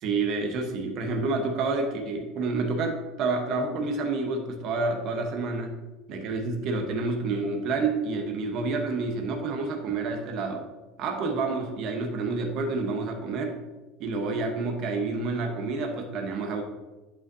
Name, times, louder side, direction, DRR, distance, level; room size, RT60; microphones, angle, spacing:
voice 1, 0.0-5.8 6.1-10.6 11.0-13.6 14.0-16.6, right 3 dB, 45° right, 3 dB, 1.2 m, -29 dB
11.0 x 5.3 x 2.8 m, 1.2 s
cardioid pair, 165°, 0 cm